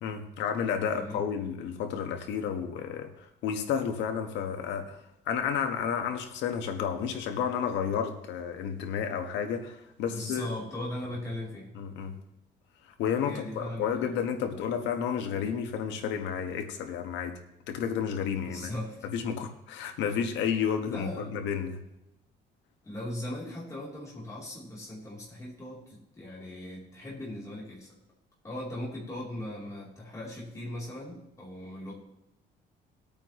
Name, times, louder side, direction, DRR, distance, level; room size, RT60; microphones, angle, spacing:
voice 1, 0.0-5.0 5.2-10.5 11.7-12.1 13.0-17.4 17.7-18.7 19.1-21.8, left 7 dB, 85° left, 5 dB, 1.5 m, -31 dB
voice 2, 10.1-11.7 13.3-14.0 18.4-19.1 20.9-21.3 22.8-27.9 28.4-31.9, left 1 dB, 15° left, -5 dB, 3.5 m, -38 dB
19.5 x 8.8 x 3.2 m, 0.87 s
cardioid pair, 165°, 18 cm